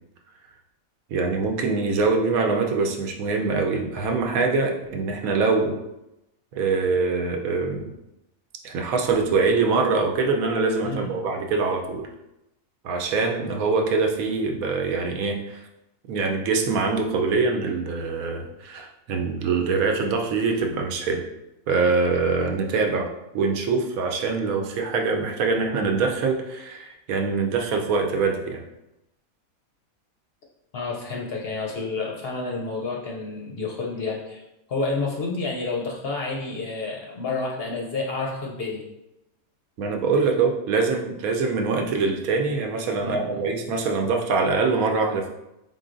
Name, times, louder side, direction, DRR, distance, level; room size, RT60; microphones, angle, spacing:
voice 1, 1.1-5.8 6.5-7.8 8.6-12.0 12.8-15.6 16.1-21.2 21.7-23.1 23.3-28.6 39.8-45.3, right 4 dB, 80° right, 3 dB, 1.1 m, -24 dB
voice 2, 30.7-34.4 34.7-38.8 43.0-43.4, left 3 dB, 60° left, -1 dB, 0.7 m, -29 dB
4.6 x 3.8 x 2.5 m, 0.90 s
omnidirectional pair, 1.5 m